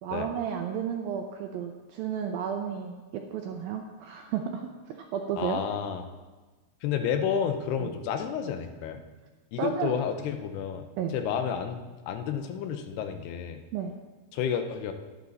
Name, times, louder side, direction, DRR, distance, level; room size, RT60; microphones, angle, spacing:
voice 1, 0.0-4.7 5.0-5.6 7.8-7.9 9.6-9.9 11.0-11.1 13.7-13.9, right 8 dB, 85° right, 3 dB, 2.0 m, -32 dB
voice 2, 5.4-6.0 6.8-9.0 9.5-10.9 11.1-13.6 14.3-14.9, left 8 dB, 75° left, 7 dB, 2.6 m, -30 dB
12.0 x 11.5 x 4.1 m, 1.3 s
omnidirectional pair, 5.1 m